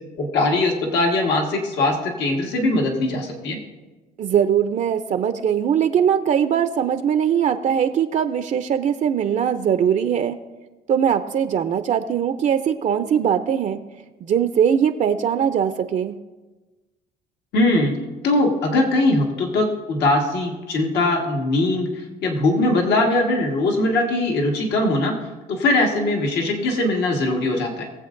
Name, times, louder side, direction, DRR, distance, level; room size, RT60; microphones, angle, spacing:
voice 1, 0.2-3.6 17.5-18.0 18.2-21.9 22.2-25.2 25.5-27.9, left 2 dB, 75° left, 1 dB, 1.6 m, -21 dB
voice 2, 4.2-10.4 10.9-13.8 14.2-16.1, right 8 dB, 45° right, 9 dB, 0.5 m, -21 dB
19.5 x 7.7 x 2.6 m, 1.2 s
cardioid pair, 110°, 17 cm